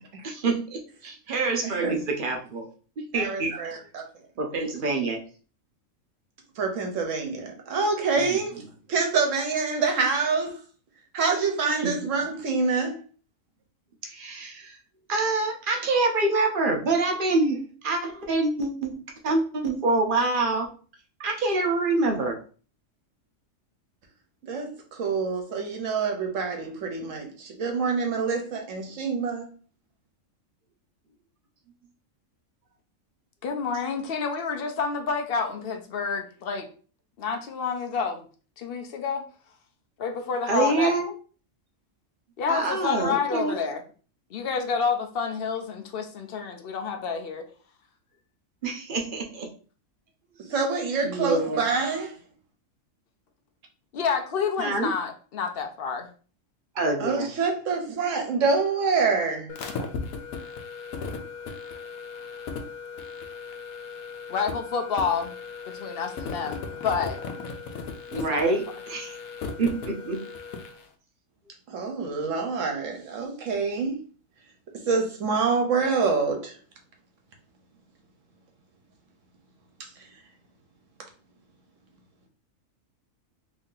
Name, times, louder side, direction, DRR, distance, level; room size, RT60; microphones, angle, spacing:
voice 1, 0.2-2.7 3.0-3.6 4.4-5.2 8.2-8.4 11.8-11.9 14.0-14.8 15.1-20.7 21.2-22.4 40.5-41.1 42.5-43.6 48.6-49.5 50.4-50.5 51.0-51.6 54.6-54.9 56.8-57.3 68.1-69.2 69.6-70.2, right 3 dB, 50° right, 0.8 m, -26 dB
voice 2, 1.6-2.0 3.1-4.0 6.6-8.6 8.9-10.6 11.1-13.0 24.4-29.5 50.5-52.1 57.0-59.5 71.7-74.0 74.9-76.6 79.8-79.9, right 4 dB, 70° right, 1.2 m, -26 dB
voice 3, 33.4-36.7 37.2-38.2 38.6-39.3 40.0-40.9 42.4-43.8 44.3-47.5 53.9-56.1 64.3-65.3 65.6-67.2 68.1-68.4, left 5 dB, 60° left, 0.6 m, -29 dB
sound 1, 59.5-70.8, left 4 dB, 85° left, 1.1 m, -37 dB
3.0 x 2.7 x 3.8 m
omnidirectional pair, 1.4 m